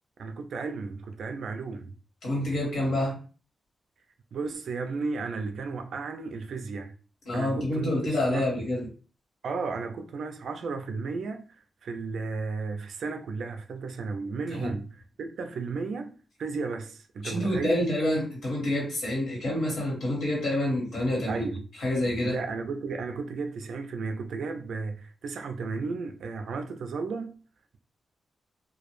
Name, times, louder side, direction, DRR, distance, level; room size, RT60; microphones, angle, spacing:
voice 1, 0.2-1.9 4.3-6.9 7.3-8.5 9.4-11.5 11.8-16.1 16.4-17.9 21.3-21.6 22.2-27.4, right 4 dB, 70° right, 0.3 m, -34 dB
voice 2, 2.2-3.2 7.3-8.9 14.6-14.7 17.2-21.4 21.8-22.4, left 1 dB, 65° left, 1.2 m, -27 dB
2.2 x 2.0 x 3.0 m
wide cardioid pair, 160°, 0 cm